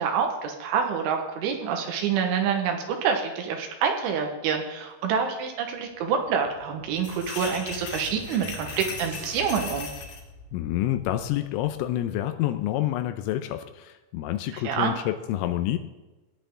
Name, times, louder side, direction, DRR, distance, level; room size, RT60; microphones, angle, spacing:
voice 1, 0.0-9.9 14.5-15.0, right 6 dB, 75° right, 3 dB, 3.5 m, -27 dB
sound 1, 5.7-12.0, left 1 dB, 50° right, 2.2 m, -45 dB
sound 2, 7.0-10.2, left 5 dB, 70° left, 4.5 m, -38 dB
voice 2, 10.5-15.8, left 13 dB, 85° left, 8 dB, 3.2 m, -28 dB
17.5 x 10.0 x 3.7 m, 1.1 s
omnidirectional pair, 5.9 m